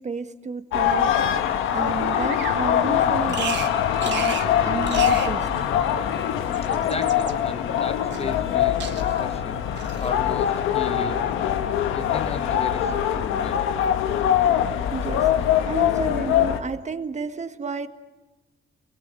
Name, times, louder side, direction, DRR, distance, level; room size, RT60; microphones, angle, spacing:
voice 1, 0.0-3.6 4.0-4.4 4.6-5.7 14.9-15.3 15.7-17.9, right 5 dB, 35° right, 8 dB, 1.6 m, -31 dB
sound 1, 0.7-16.6, left 9 dB, 90° left, 1.5 m, -23 dB
Bird vocalization bird call bird song, 2.3-2.6 3.3-3.7 4.0-4.5 4.8-5.3 6.3-7.3 8.1-8.5 8.8-9.3 9.8-10.1, right 8 dB, 65° right, 2.5 m, -34 dB
sound 2, 3.5-13.6, left 6 dB, 65° left, 3.9 m, -41 dB
voice 2, 6.7-9.6 10.0-11.3 11.8-13.6, left 4 dB, 30° left, 11 dB, 1.2 m, -35 dB
28.5 x 22.5 x 8.3 m, 1.1 s
cardioid pair, 90°, 20 cm